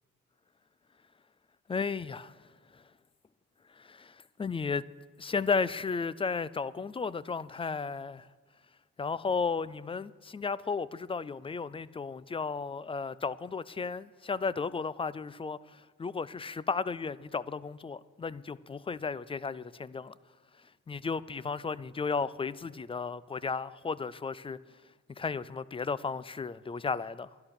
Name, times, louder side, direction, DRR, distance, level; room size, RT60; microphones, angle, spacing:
voice 1, 1.7-2.4 2.7-2.8 3.8-4.9 5.2-8.3 9.0-20.1 20.9-24.6 25.1-27.3, left 5 dB, 20° left, 0.4 m, -34 dB
11.5 x 11.5 x 6.4 m
cardioid pair, 90°, 30 cm